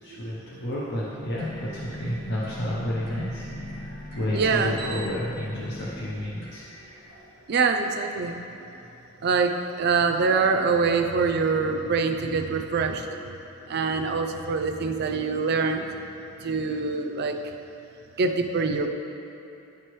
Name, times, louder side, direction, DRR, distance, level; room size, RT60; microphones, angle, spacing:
voice 1, 0.0-3.4 3.8-6.6, left 1 dB, 50° left, -6 dB, 0.7 m, -31 dB
sound 1, 1.1-7.7, equal, 85° left, 1.5 m, -39 dB
voice 2, 4.3-4.8 7.5-8.4 9.2-9.5 9.8-13.0 13.7-15.8 16.4-17.4 18.2-18.9, right 4 dB, 45° right, 4 dB, 0.4 m, -24 dB
9.7 x 4.7 x 3.1 m, 3.0 s
head